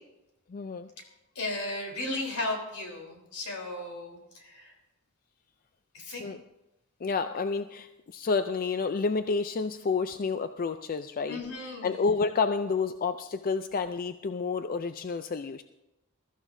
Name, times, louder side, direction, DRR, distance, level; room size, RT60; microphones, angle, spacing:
voice 1, 0.5-0.9 6.2-6.4 7.0-15.6, left 4 dB, 40° left, 10 dB, 0.4 m, -30 dB
voice 2, 1.4-4.7 5.9-6.3 11.3-12.0, left 2 dB, 80° left, 0 dB, 3.7 m, -35 dB
21.0 x 13.5 x 2.7 m, 0.94 s
head